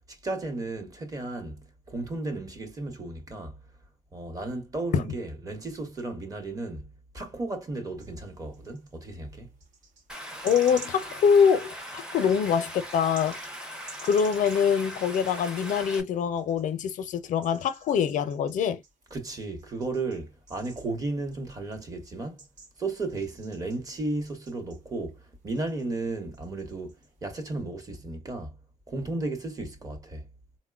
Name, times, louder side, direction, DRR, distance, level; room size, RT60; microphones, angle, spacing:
voice 1, 0.1-3.6 4.1-6.9 7.1-9.5 19.1-22.4 22.8-27.0 27.2-28.5 28.9-30.3, right 2 dB, 30° right, 0.9 m, -34 dB
sound 1, 8.0-9.0 9.6-16.9 17.3-25.3 25.5-27.4, right 4 dB, 75° right, 1.1 m, -52 dB
Stream, 10.1-16.0, equal, 5° right, 0.6 m, -40 dB
voice 2, 10.4-13.4 14.0-18.8, left 7 dB, 85° left, 0.5 m, -24 dB
3.8 x 2.1 x 2.3 m
wide cardioid pair, 160°, 13 cm